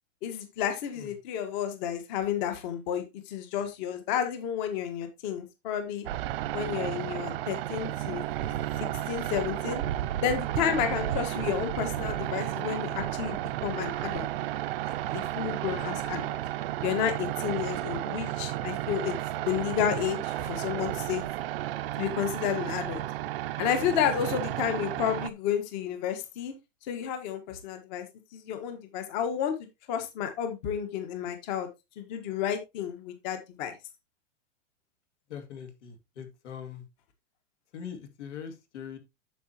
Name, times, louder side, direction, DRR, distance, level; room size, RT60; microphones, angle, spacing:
voice 1, 0.2-6.1 6.5-8.2 9.1-9.8 10.2-14.3 14.8-16.4 16.8-19.1 19.4-21.2 22.0-23.0 23.6-26.5 26.9-28.0 28.3-29.5 29.9-31.7 32.0-33.7, left 9 dB, 35° left, 1.5 m, -31 dB
sound 1, 6.0-25.3, right 13 dB, 50° right, 0.7 m, -33 dB
voice 2, 35.3-36.8 37.7-39.0, left 8 dB, 70° left, 2.4 m, -42 dB
9.3 x 7.0 x 2.9 m
supercardioid pair, 160°, 37 cm